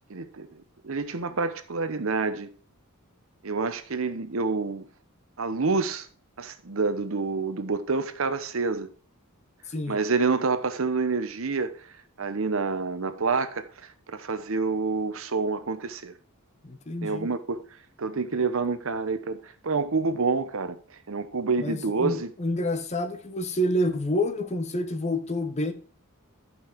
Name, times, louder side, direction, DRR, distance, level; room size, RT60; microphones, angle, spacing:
voice 1, 0.1-2.5 3.4-4.8 5.4-6.1 6.4-8.9 9.9-11.7 12.2-13.7 14.1-16.1 17.0-17.6 18.0-20.8 21.1-22.3, right 4 dB, 65° right, 0.9 m, -28 dB
voice 2, 16.6-17.3 21.6-25.7, left 1 dB, 30° left, 0.8 m, -28 dB
11.5 x 5.4 x 4.5 m
head